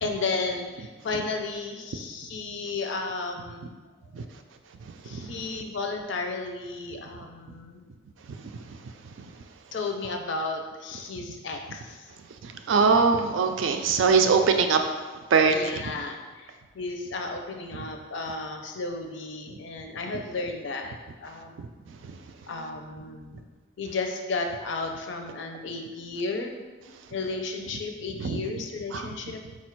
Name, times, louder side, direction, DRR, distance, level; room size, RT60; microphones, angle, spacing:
voice 1, 0.0-3.8 4.2-4.3 5.0-7.8 9.7-12.1 15.5-21.6 22.5-23.5 23.8-26.5 27.1-29.4, left 3 dB, 70° left, 3 dB, 0.5 m, -33 dB
voice 2, 12.7-14.8 15.3-15.6 28.2-28.4 28.9-29.1, right 5 dB, 80° right, 6 dB, 0.4 m, -21 dB
4.2 x 2.4 x 4.4 m, 1.3 s
head